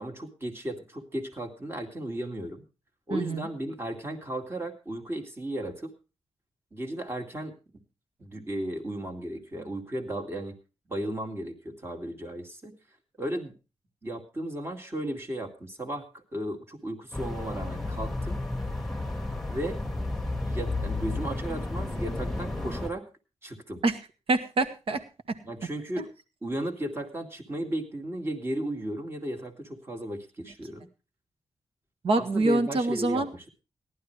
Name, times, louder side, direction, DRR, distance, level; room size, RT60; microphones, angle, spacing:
voice 1, 0.0-2.6 3.1-5.9 6.7-7.5 8.2-10.6 10.9-12.8 13.2-13.5 14.0-18.4 19.5-19.8 20.4-23.1 23.4-23.8 25.4-26.1 26.4-30.9 32.2-33.4, right 1 dB, 20° right, 4 dB, 2.3 m, -35 dB
voice 2, 3.1-3.5 23.8-24.0 24.3-25.0 25.3-25.4 26.0-26.1 32.0-33.3, right 2 dB, 55° right, 7 dB, 1.7 m, -26 dB
sound 1, 17.1-22.9, left 2 dB, 5° left, 1.9 m, -32 dB
18.0 x 11.5 x 3.3 m, 0.31 s
wide cardioid pair, 155°, 11 cm